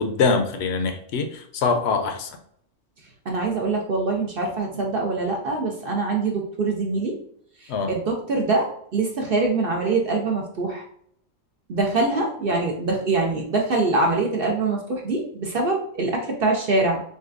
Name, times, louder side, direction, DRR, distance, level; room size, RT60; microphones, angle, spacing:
voice 1, 0.0-2.4 7.7-7.9, left 4 dB, 65° left, 6 dB, 0.9 m, -23 dB
voice 2, 3.3-7.1 7.6-10.8 11.7-17.0, right 3 dB, 55° right, 0 dB, 0.8 m, -24 dB
6.4 x 2.3 x 2.5 m, 0.65 s
omnidirectional pair, 1.3 m